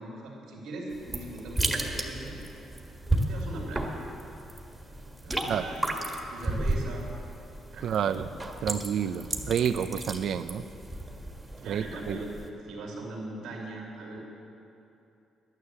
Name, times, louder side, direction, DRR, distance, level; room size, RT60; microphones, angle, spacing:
voice 1, 0.0-2.4 3.0-3.9 5.2-6.0 6.3-7.0 7.7-8.3 11.5-12.3 12.7-14.2, right 2 dB, 85° right, -3 dB, 2.7 m, -40 dB
sound 1, 0.9-12.5, right 1 dB, 15° right, 1.6 m, -34 dB
voice 2, 7.8-8.3 8.6-10.6 11.7-12.2, right 8 dB, 70° right, 12 dB, 0.5 m, -29 dB
11.0 x 9.9 x 7.8 m, 2.8 s
cardioid pair, 90°, 0 cm